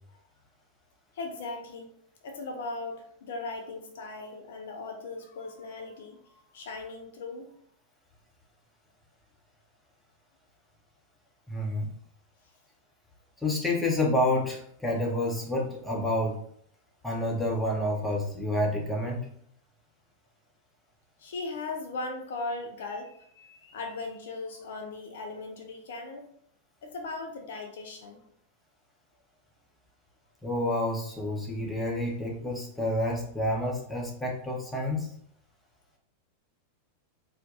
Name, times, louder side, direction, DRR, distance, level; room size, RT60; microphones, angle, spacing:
voice 1, 1.1-1.9 2.2-7.5 21.2-26.3 26.8-28.2, left 3 dB, 60° left, 5 dB, 0.4 m, -38 dB
voice 2, 11.5-11.9 13.4-16.4 17.0-19.3 30.4-35.1, left 1 dB, 5° left, -2 dB, 0.8 m, -29 dB
2.6 x 2.2 x 3.6 m, 0.64 s
figure-of-eight pair, 90°, 0 cm